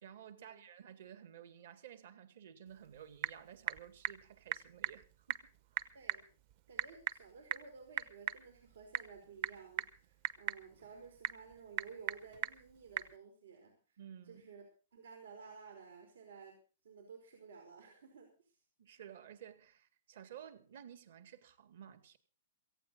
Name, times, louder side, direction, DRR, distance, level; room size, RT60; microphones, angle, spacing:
voice 1, 0.0-5.4 5.7-5.9 14.0-14.4 18.8-22.2, right 9 dB, 55° right, 2.1 m, -54 dB
Typing / Telephone, 2.7-13.2, right 11 dB, 35° right, 0.8 m, -42 dB
voice 2, 5.9-6.2 6.7-13.7 14.2-14.6 14.9-16.5 16.8-18.3, right 5 dB, 85° right, 4.8 m, -54 dB
17.5 x 15.5 x 3.9 m
hypercardioid pair, 175°, 0 cm